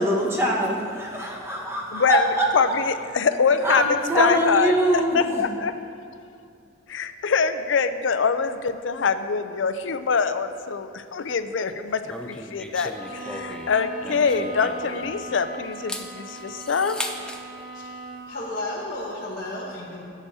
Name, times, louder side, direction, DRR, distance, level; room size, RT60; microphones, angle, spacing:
voice 1, 0.0-2.5 3.6-5.5, right 1 dB, 15° right, -3 dB, 1.3 m, -23 dB
voice 2, 1.9-2.3 2.5-3.8 4.2-5.7 6.9-17.0, left 5 dB, 75° left, 10 dB, 0.5 m, -24 dB
sound 1, 12.0-15.3 15.7-17.4, left 1 dB, 5° left, 0.5 m, -36 dB
Bowed string instrument, 12.9-18.4, right 1 dB, 40° right, 2.5 m, -39 dB
voice 3, 18.3-20.0, left 1 dB, 50° left, -6 dB, 1.0 m, -32 dB
14.5 x 8.2 x 2.8 m, 2.4 s
head